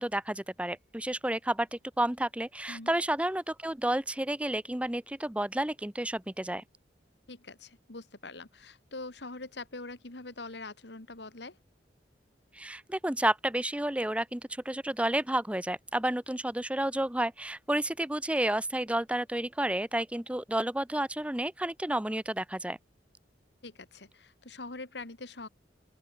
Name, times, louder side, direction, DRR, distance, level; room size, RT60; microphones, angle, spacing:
voice 1, 0.0-6.6 12.5-22.8, right 1 dB, 5° right, 0.8 m, -31 dB
voice 2, 7.3-11.6 23.6-25.5, left 3 dB, 70° left, 2.2 m, -43 dB
open air
head